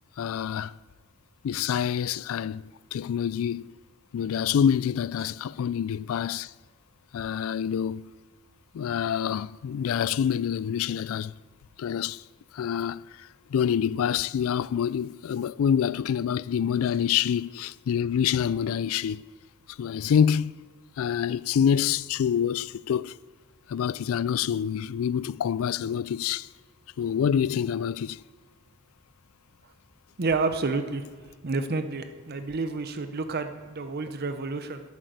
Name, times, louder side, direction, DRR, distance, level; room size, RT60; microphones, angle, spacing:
voice 1, 0.2-0.7 1.4-2.6 2.9-3.7 4.1-6.5 7.1-8.1 8.7-11.3 11.8-12.2 12.5-13.0 13.5-19.2 19.8-20.5 21.0-23.1 23.7-26.5 27.0-28.2, left 8 dB, 70° left, 0.3 m, -26 dB
voice 2, 30.2-31.0 31.4-34.8, right 3 dB, 45° right, 0.7 m, -29 dB
10.5 x 8.5 x 7.8 m
head